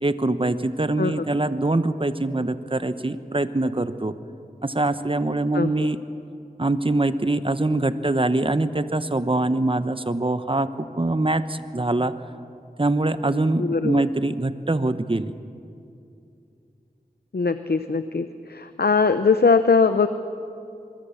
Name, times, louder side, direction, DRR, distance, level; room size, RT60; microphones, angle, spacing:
voice 1, 0.0-4.1 4.6-6.0 6.6-10.7 11.0-12.1 12.8-15.3, right 2 dB, 35° right, 12 dB, 1.1 m, -23 dB
voice 2, 5.5-5.9 13.6-14.0 17.3-20.1, left 4 dB, 80° left, 10 dB, 0.8 m, -21 dB
25.5 x 22.5 x 7.2 m, 2.6 s
wide cardioid pair, 40°, 16 cm